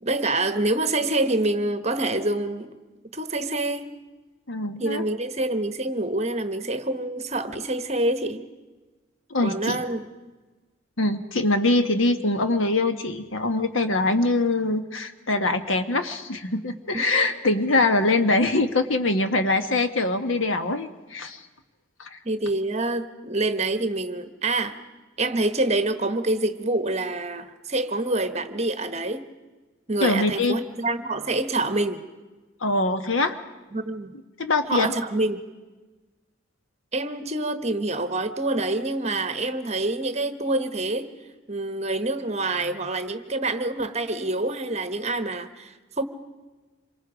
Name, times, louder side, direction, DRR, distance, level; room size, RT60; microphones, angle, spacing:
voice 1, 0.0-2.7 3.1-3.9 4.8-8.4 9.4-10.0 16.9-17.0 22.2-24.8 25.2-29.2 29.9-32.0 33.7-34.1 34.7-35.4 36.9-41.1 41.5-46.0, right 2 dB, 30° right, 10 dB, 1.1 m, -26 dB
voice 2, 4.5-5.0 9.3-9.8 11.0-21.4 22.0-22.2 30.0-30.6 32.6-33.4 34.4-34.9, left 2 dB, 70° left, 8 dB, 1.3 m, -23 dB
27.0 x 23.5 x 5.0 m, 1.3 s
head